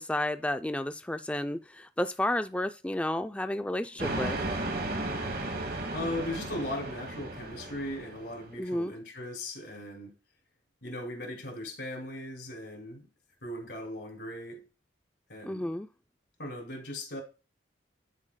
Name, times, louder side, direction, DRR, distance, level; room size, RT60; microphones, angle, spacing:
voice 1, 0.0-4.4 8.6-8.9 15.5-15.9, left 1 dB, 5° left, 0.3 m, -31 dB
sound 1, 4.0-8.5, right 2 dB, 50° right, 1.1 m, -35 dB
voice 2, 5.9-10.1 10.8-13.1 13.4-14.6 15.3-15.7 16.4-17.2, left 1 dB, 65° left, 2.8 m, -38 dB
11.0 x 5.0 x 2.2 m
head